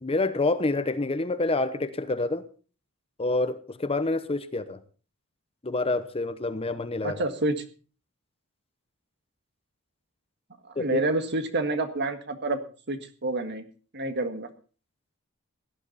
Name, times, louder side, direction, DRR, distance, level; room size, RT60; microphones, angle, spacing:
voice 1, 0.0-2.4 3.2-4.8 5.6-7.2 10.8-11.0, left 2 dB, 25° left, 12 dB, 0.9 m, -27 dB
voice 2, 7.0-7.6 10.8-12.6 12.9-13.6 13.9-14.5, right 2 dB, 55° right, 8 dB, 1.7 m, -28 dB
17.0 x 11.5 x 4.1 m, 0.37 s
head